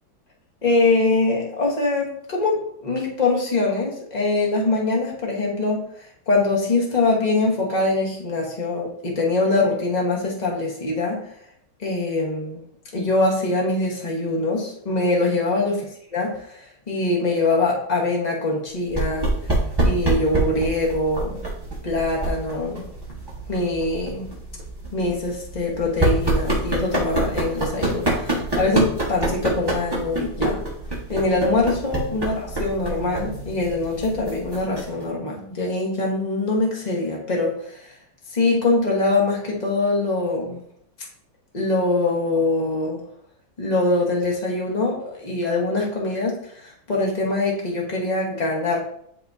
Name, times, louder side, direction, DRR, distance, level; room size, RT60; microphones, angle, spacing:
voice 1, 0.6-5.9 6.3-11.2 11.8-12.6 12.9-15.8 16.1-19.3 19.8-21.4 21.8-22.8 23.5-24.3 24.9-30.6 31.1-37.9 38.3-40.6 41.5-43.0 43.6-48.8, left 2 dB, 25° left, -2 dB, 1.1 m, -23 dB
sound 1, 18.9-35.0, right 2 dB, 15° right, 1.1 m, -26 dB
10.5 x 3.6 x 2.7 m, 0.70 s
omnidirectional pair, 2.2 m